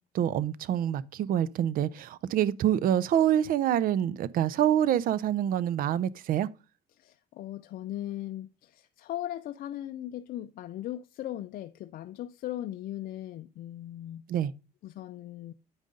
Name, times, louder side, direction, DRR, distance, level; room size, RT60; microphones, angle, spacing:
voice 1, 0.1-6.5 14.3-14.5, right 10 dB, 55° right, 0.5 m, -26 dB
voice 2, 7.0-14.2 14.8-15.5, left 13 dB, 60° left, 0.4 m, -38 dB
8.8 x 5.2 x 3.7 m
cardioid pair, 110°, 17 cm